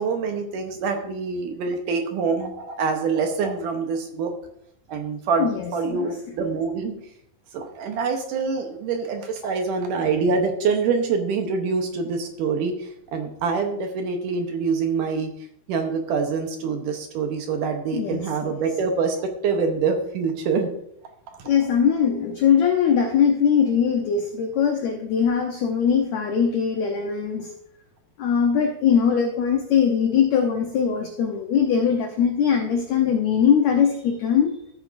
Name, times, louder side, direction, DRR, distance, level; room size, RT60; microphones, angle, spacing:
voice 1, 0.0-4.3 4.9-7.0 7.5-15.3 15.7-20.7 21.3-21.5, right 5 dB, 70° right, 4 dB, 2.2 m, -25 dB
voice 2, 5.4-6.1 17.9-18.6 21.4-27.5 28.2-34.5, left 7 dB, 90° left, 4 dB, 1.5 m, -21 dB
14.5 x 8.9 x 2.6 m, 0.76 s
omnidirectional pair, 4.5 m